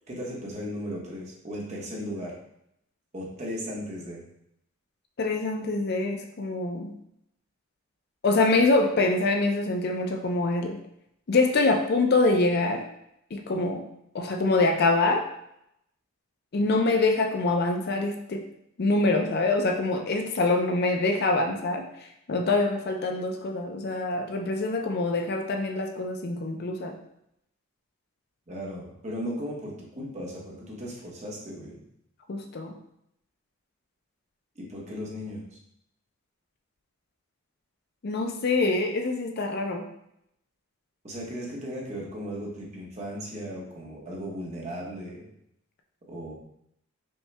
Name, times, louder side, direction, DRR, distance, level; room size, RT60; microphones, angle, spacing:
voice 1, 0.1-2.3 3.1-4.2 28.5-31.8 34.6-35.4 41.0-45.3 46.1-46.3, equal, 30° right, -3 dB, 1.0 m, -36 dB
voice 2, 5.2-6.9 8.2-10.8 11.3-12.9 13.3-13.8 14.1-15.3 16.5-18.5 18.8-21.9 22.3-27.0 32.3-32.7 38.0-39.9, left 2 dB, 50° left, 4 dB, 0.4 m, -25 dB
5.3 x 2.3 x 3.3 m, 0.77 s
head